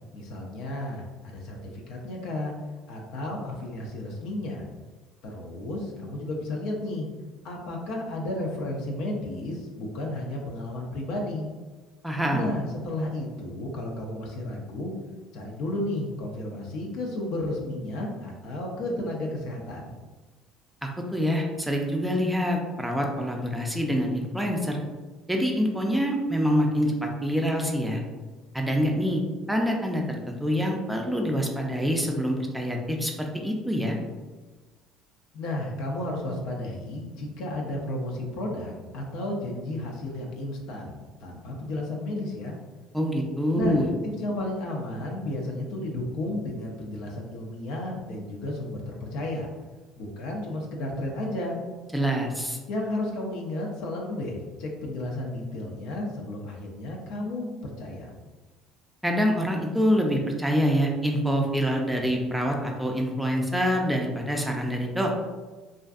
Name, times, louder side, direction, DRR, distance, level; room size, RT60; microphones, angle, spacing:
voice 1, 0.1-2.5 2.9-4.7 5.2-7.1 7.4-11.5 12.3-14.9 15.3-19.9 35.3-42.5 43.6-49.5 50.0-51.6 52.7-58.1, left 1 dB, 75° left, -1 dB, 0.5 m, -33 dB
voice 2, 12.0-12.5 20.8-24.8 25.3-28.0 28.5-29.2 29.5-34.0 42.9-43.9 51.9-52.6 59.0-65.2, equal, 5° right, 1 dB, 0.4 m, -26 dB
2.5 x 2.4 x 2.3 m, 1.3 s
supercardioid pair, 90°, 0 cm